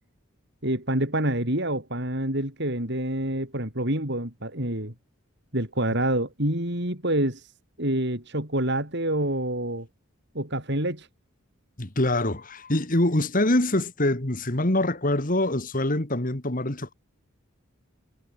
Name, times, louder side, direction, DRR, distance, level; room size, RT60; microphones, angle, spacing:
voice 1, 0.6-4.9 5.5-7.5 7.8-9.9 10.3-11.1, right 1 dB, 55° right, 6.6 m, -27 dB
voice 2, 11.8-16.9, left 1 dB, 40° left, 2.3 m, -24 dB
head